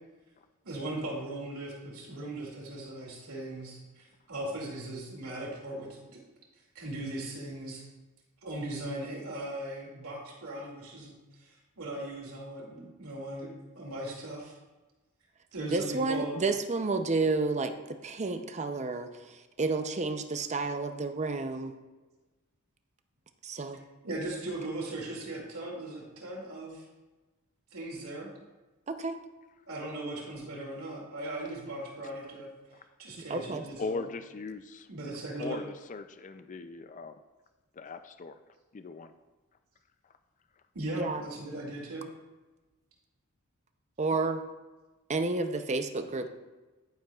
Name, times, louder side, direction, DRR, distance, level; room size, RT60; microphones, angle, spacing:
voice 1, 0.6-6.2 6.7-7.9 8.4-11.2 11.4-14.6 15.5-16.4 24.0-26.9 27.7-28.3 29.6-32.5 33.0-34.0 34.9-35.6 40.7-42.1, right 1 dB, 75° right, -2 dB, 2.4 m, -38 dB
voice 2, 15.7-17.7 18.0-21.7 23.4-23.8 28.9-29.2 33.2-33.7 41.0-41.2 44.0-44.4 45.1-46.3, right 3 dB, 30° right, 7 dB, 0.6 m, -31 dB
voice 3, 33.8-34.9 35.4-37.2 37.8-38.4 38.7-39.1, left 3 dB, 35° left, 9 dB, 0.4 m, -39 dB
10.5 x 9.2 x 2.4 m, 1.2 s
head